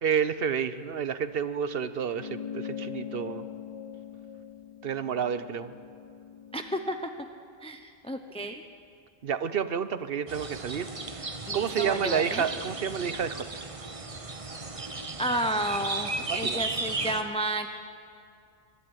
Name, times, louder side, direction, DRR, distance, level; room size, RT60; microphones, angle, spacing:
voice 1, 0.0-3.4 4.8-5.7 9.2-10.9 11.5-13.4 16.3-16.6, right 7 dB, 65° right, 13 dB, 1.0 m, -29 dB
sound 1, 2.1-6.9, left 8 dB, 40° left, 0.7 m, -41 dB
voice 2, 6.5-7.0 7.6-8.6 11.5-12.5 15.2-17.7, right 1 dB, 5° left, 5 dB, 0.8 m, -31 dB
sound 2, 10.3-17.2, right 3 dB, 35° right, 1.1 m, -35 dB
23.0 x 12.5 x 9.8 m, 2.3 s
omnidirectional pair, 1.0 m